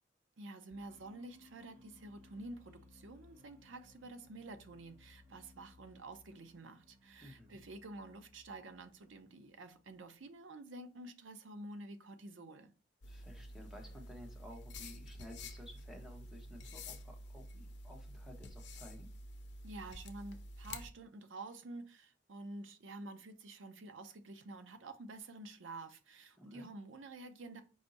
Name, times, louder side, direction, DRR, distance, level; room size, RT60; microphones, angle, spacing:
voice 1, 0.4-12.7 19.6-27.6, right 2 dB, 85° right, 0.6 m, -49 dB
sound 1, 0.7-10.3, left 2 dB, 40° right, 1.8 m, -63 dB
voice 2, 7.2-7.6 13.0-19.1 26.4-26.7, equal, 5° right, 0.9 m, -54 dB
sound 2, 13.0-20.9, left 1 dB, 65° left, 0.6 m, -49 dB
4.8 x 2.6 x 4.0 m
head